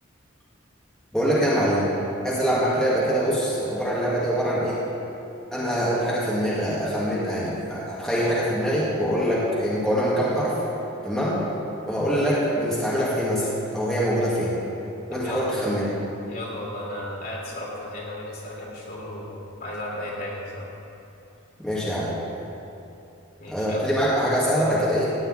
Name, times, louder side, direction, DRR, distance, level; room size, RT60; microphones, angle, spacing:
voice 1, 1.1-1.9 2.2-4.8 5.5-10.6 11.0-11.4 11.9-14.6 15.1-16.0 21.6-22.2 23.5-25.1, equal, ahead, -9 dB, 2.2 m, -24 dB
voice 2, 15.1-15.5 16.3-20.7 23.4-23.8, left 1 dB, 45° left, -4 dB, 3.2 m, -35 dB
16.0 x 5.4 x 9.1 m, 2.8 s
head